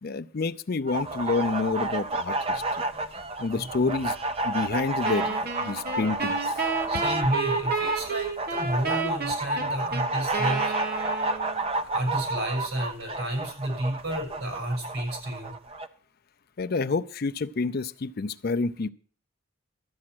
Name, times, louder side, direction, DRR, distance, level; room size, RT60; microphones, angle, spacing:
voice 1, 0.0-2.8 3.4-4.2 4.4-6.4 16.6-18.9, left 4 dB, 45° left, 12 dB, 0.5 m, -28 dB
sound 1, 0.9-15.9, right 2 dB, 25° right, 0.6 m, -30 dB
voice 2, 3.5-3.9 6.9-10.7 11.8-15.5, right 1 dB, 85° right, 2 dB, 6.1 m, -31 dB
Wind instrument woodwind instrument, 5.0-11.6, right 4 dB, 45° right, 1.3 m, -31 dB
13.0 x 8.6 x 6.2 m, 0.42 s
head